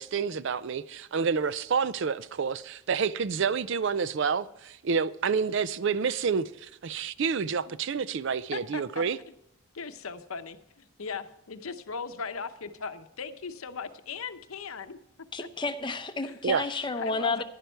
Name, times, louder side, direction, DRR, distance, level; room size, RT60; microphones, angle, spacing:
voice 1, 0.0-9.2 16.4-16.6, right 6 dB, 55° right, 0.4 m, -29 dB
voice 2, 8.5-9.0 9.7-15.0 15.4-15.5 16.2-16.6 17.0-17.4, left 5 dB, 70° left, 0.8 m, -38 dB
voice 3, 15.3-17.4, left 3 dB, 20° left, 0.6 m, -31 dB
11.5 x 10.5 x 4.5 m
head